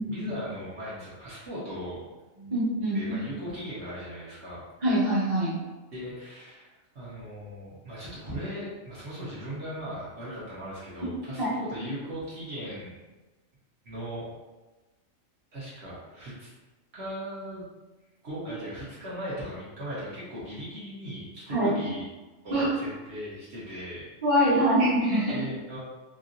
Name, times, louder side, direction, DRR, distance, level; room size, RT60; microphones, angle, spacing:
voice 1, 0.0-2.0 2.9-4.7 5.9-13.0 13.8-14.3 15.5-16.5 16.9-17.7 18.2-22.1 22.4-24.0 24.4-24.7 25.3-25.8, equal, 55° right, -9 dB, 1.1 m, -38 dB
voice 2, 2.4-3.0 4.8-5.5 11.4-11.5 21.5-21.7 22.5-22.7 24.2-25.4, right 1 dB, 30° right, -8 dB, 0.8 m, -24 dB
3.0 x 2.6 x 2.5 m, 1.2 s
omnidirectional pair, 1.4 m